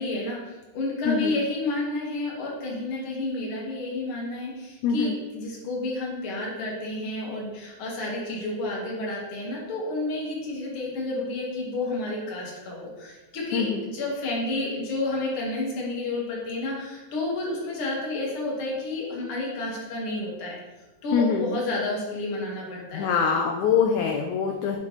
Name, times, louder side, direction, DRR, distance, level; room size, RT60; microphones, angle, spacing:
voice 1, 0.0-20.6 21.0-23.1, left 2 dB, 50° left, -3 dB, 2.1 m, -30 dB
voice 2, 4.8-5.2 13.5-13.8 21.1-21.5 22.9-24.8, left 6 dB, 80° left, 1 dB, 1.8 m, -24 dB
8.1 x 5.0 x 3.1 m, 1.1 s
omnidirectional pair, 3.8 m